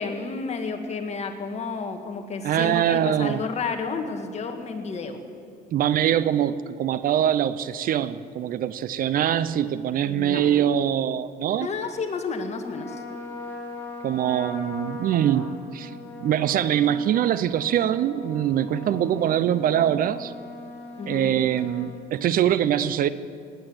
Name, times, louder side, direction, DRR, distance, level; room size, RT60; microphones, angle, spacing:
voice 1, 0.0-5.2 10.0-10.5 11.6-13.0 21.0-21.3, left 4 dB, 40° left, 5 dB, 1.7 m, -31 dB
voice 2, 2.4-3.4 5.7-11.7 14.0-15.9 16.2-20.3 21.1-23.1, right 10 dB, 55° right, 16 dB, 0.6 m, -23 dB
Trumpet, 12.7-22.0, left 2 dB, 10° left, 3.5 m, -39 dB
18.5 x 9.1 x 7.8 m, 2.2 s
cardioid pair, 110°, 17 cm